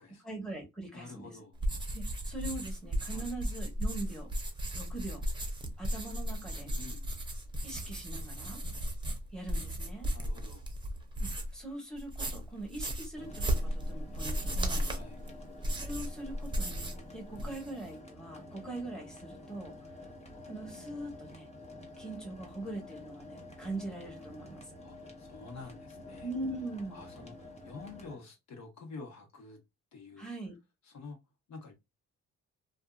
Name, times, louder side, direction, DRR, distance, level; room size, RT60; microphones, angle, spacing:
voice 1, 0.2-1.3 1.9-4.3 4.7-5.2 5.8-6.7 7.6-8.6 9.3-10.1 11.2-14.9 15.8-19.7 20.4-21.5 22.0-24.8 26.2-27.0 30.2-30.6, right 2 dB, ahead, 1.1 m, -42 dB
voice 2, 0.9-1.6 3.1-3.3 6.8-7.1 10.1-10.7 14.8-15.2 17.3-17.6 24.8-26.3 26.9-29.6 29.9-30.3 30.8-31.2 31.5-31.7, left 4 dB, 65° left, 1.2 m, -48 dB
sound 1, 1.6-11.6 12.0-17.0 17.3-17.9, equal, 15° right, 0.7 m, -35 dB
sound 2, 13.1-28.2, left 2 dB, 20° left, 1.0 m, -49 dB
2.7 x 2.5 x 2.3 m
cardioid pair, 90°, 30 cm